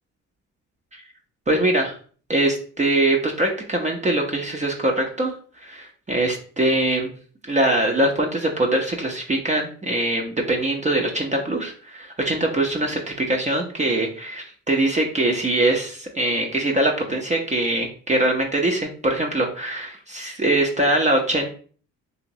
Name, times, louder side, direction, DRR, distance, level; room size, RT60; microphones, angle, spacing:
voice 1, 1.5-2.0 2.3-5.3 5.6-7.1 7.5-21.5, right 1 dB, 25° right, 0 dB, 0.5 m, -22 dB
2.9 x 2.8 x 2.7 m, 0.43 s
cardioid pair, 90°, 30 cm